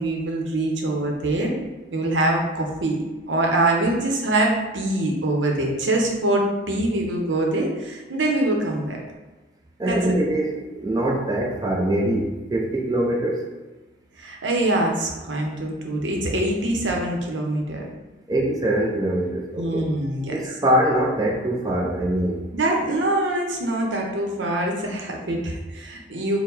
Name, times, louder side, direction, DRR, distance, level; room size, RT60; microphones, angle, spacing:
voice 1, 0.0-1.6 1.9-9.0 9.8-10.1 14.2-18.0 19.6-20.3 22.5-26.4, right 1 dB, 85° right, 1 dB, 0.7 m, -24 dB
voice 2, 9.8-13.5 18.3-19.8 20.3-22.4, right 1 dB, 20° right, -2 dB, 0.5 m, -23 dB
4.5 x 2.1 x 3.9 m, 1.2 s
head